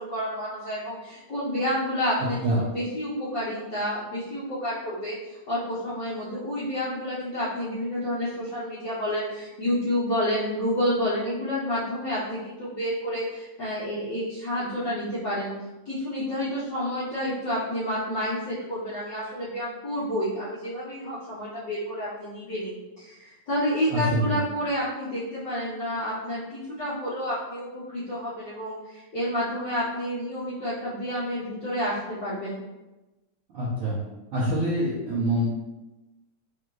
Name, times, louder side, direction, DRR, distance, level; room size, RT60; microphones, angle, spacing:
voice 1, 0.0-15.5 15.8-32.6, equal, 85° left, -11 dB, 0.9 m, -29 dB
voice 2, 2.2-2.6 23.9-24.4 33.5-34.0 34.3-35.5, right 1 dB, 85° right, -9 dB, 1.2 m, -25 dB
4.9 x 2.5 x 3.1 m, 1.1 s
omnidirectional pair, 3.5 m